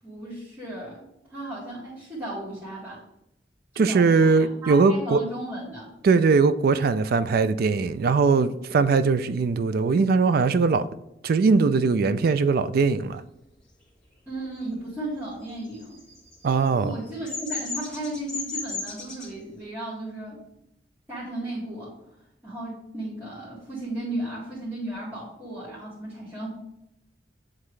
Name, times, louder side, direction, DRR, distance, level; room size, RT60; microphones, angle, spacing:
voice 1, 0.0-3.0 3.8-5.9 14.3-16.0 16.8-20.4 21.1-21.9 22.4-26.5, right 1 dB, 10° right, 2.1 m, -35 dB
voice 2, 3.8-5.2 6.0-10.9 11.2-13.2 16.4-16.9, right 4 dB, 55° right, 0.3 m, -20 dB
Bird vocalization bird call bird song, 15.6-19.3, left 4 dB, 5° left, 1.7 m, -34 dB
8.6 x 3.6 x 3.2 m
head